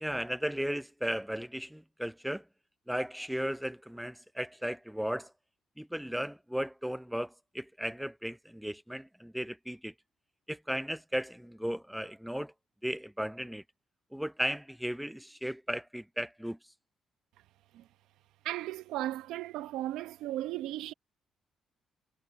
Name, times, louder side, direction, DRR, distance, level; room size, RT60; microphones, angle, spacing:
voice 1, 0.0-2.4 2.9-5.3 5.8-9.9 10.5-12.5 12.8-13.6 14.1-16.6, equal, ahead, 0.3 m, -35 dB
voice 2, 18.4-20.9, right 14 dB, 90° right, 0.8 m, -36 dB
cardioid pair, 90°, 0 cm